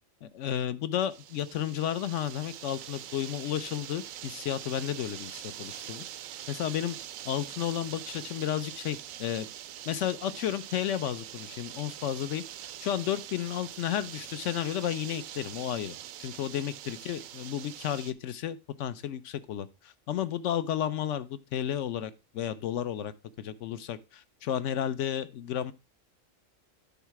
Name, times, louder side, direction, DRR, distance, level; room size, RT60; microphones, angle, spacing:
voice 1, 0.2-6.0 6.5-7.0 7.3-9.5 9.9-12.4 12.8-25.7, left 10 dB, 70° left, 1.0 m, -32 dB
sound 1, 1.1-18.1, right 11 dB, 85° right, 1.0 m, -44 dB
9.6 x 4.1 x 4.6 m
omnidirectional pair, 1.4 m